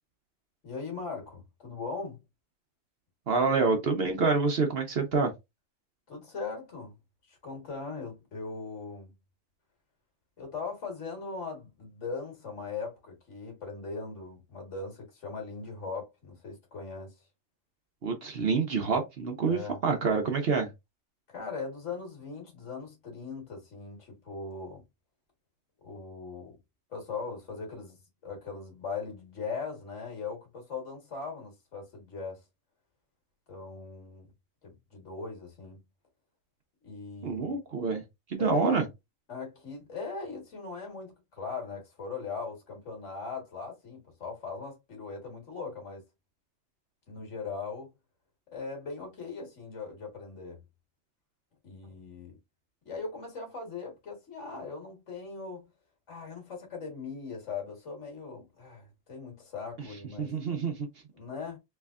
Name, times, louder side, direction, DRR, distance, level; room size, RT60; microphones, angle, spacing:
voice 1, 0.6-2.2 6.1-7.0 7.3-9.1 10.4-17.3 19.5-19.8 21.3-24.8 25.8-26.6 26.9-32.4 33.5-34.3 34.6-35.8 36.8-37.6 38.4-38.8 39.3-46.0 47.1-47.9 48.5-50.6 51.6-52.4 52.8-55.6 56.1-60.3 61.1-61.6, left 4 dB, 60° left, 1.7 m, -39 dB
voice 2, 3.3-5.3 18.0-20.7 37.2-38.0 38.3-38.8 60.2-60.9, right 4 dB, 55° right, 0.9 m, -27 dB
3.4 x 3.3 x 2.4 m
omnidirectional pair, 1.4 m